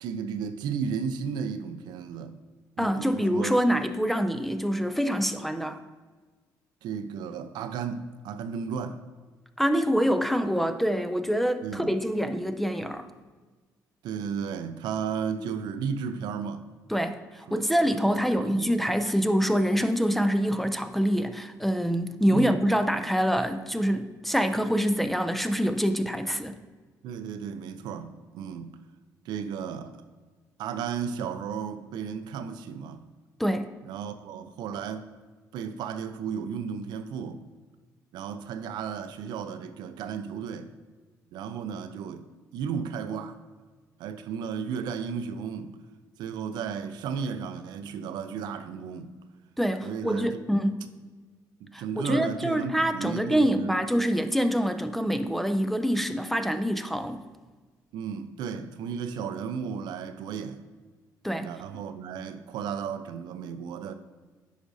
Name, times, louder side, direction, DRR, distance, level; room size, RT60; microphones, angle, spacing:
voice 1, 0.0-2.3 2.8-3.5 6.8-9.0 11.6-11.9 12.2-12.3 14.0-16.6 17.5-17.6 17.9-18.7 22.3-22.6 27.0-28.8 29.2-30.0 30.6-33.0 33.8-35.1 35.5-37.4 38.1-40.7 41.3-42.3 42.5-43.4 44.0-45.8 46.2-49.1 49.8-50.7 51.6-53.8 57.9-60.6 61.4-63.9, right 6 dB, 80° right, 0.4 m, -34 dB
voice 2, 2.8-5.8 9.6-13.1 16.9-26.5 33.4-33.7 49.6-50.8 51.7-57.2 61.2-61.5, equal, ahead, 0.4 m, -26 dB
9.6 x 5.1 x 2.6 m
cardioid pair, 95°, 7 cm